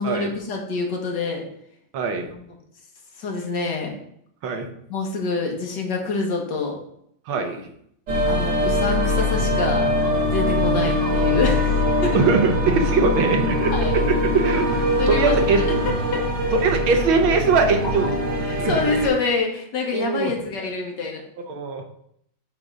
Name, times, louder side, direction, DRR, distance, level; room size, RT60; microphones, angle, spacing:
voice 1, 0.0-1.5 2.2-2.4 3.2-3.9 4.9-6.8 8.3-9.9 10.3-12.2 13.7-14.0 15.0-16.3 18.4-21.2, left 4 dB, 60° left, 1 dB, 1.9 m, -26 dB
voice 2, 1.9-2.3 4.4-4.7 7.3-7.6 10.8-10.9 12.1-13.7 14.1-15.6 16.6-18.1 18.4-18.8 19.9-20.3 21.5-21.8, right 4 dB, 80° right, 5 dB, 1.8 m, -21 dB
sound 1, 8.1-19.1, left 1 dB, 65° right, 2.0 m, -22 dB
7.9 x 3.7 x 5.4 m, 0.71 s
omnidirectional pair, 2.2 m